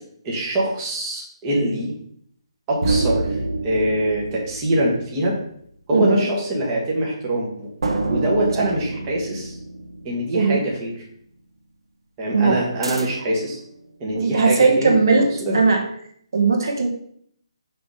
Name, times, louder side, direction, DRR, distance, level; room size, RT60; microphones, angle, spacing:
voice 1, 0.2-1.9 2.7-3.3 3.6-5.4 5.9-7.7 8.1-9.6 10.0-10.9 12.2-13.6 14.0-15.6, right 1 dB, 15° right, -3 dB, 1.0 m, -24 dB
sound 1, 2.8-5.6 7.8-10.5 12.8-13.4, right 2 dB, 80° right, 1.0 m, -27 dB
voice 2, 5.9-6.2 8.6-8.7 10.3-10.6 12.3-12.7 14.1-15.8 16.3-16.9, right 4 dB, 45° right, 2 dB, 1.0 m, -18 dB
5.7 x 3.5 x 5.3 m, 0.66 s
hypercardioid pair, 175°, 3 cm